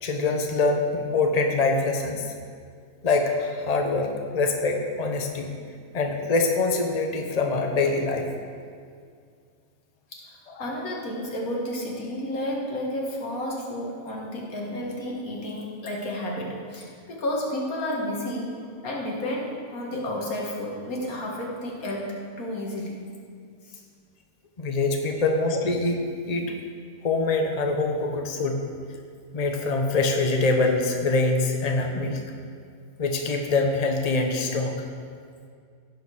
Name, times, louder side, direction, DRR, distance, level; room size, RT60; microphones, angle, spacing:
voice 1, 0.0-2.3 3.0-5.5 5.9-8.3 10.5-10.7 24.6-26.0 26.3-26.5 27.0-28.6 29.3-32.2 33.0-34.8, left 3 dB, 30° left, 3 dB, 0.9 m, -24 dB
voice 2, 10.1-18.5 18.8-23.0 23.7-23.8, left 1 dB, 85° left, -1 dB, 2.2 m, -31 dB
16.0 x 5.3 x 6.2 m, 2.2 s
omnidirectional pair, 1.5 m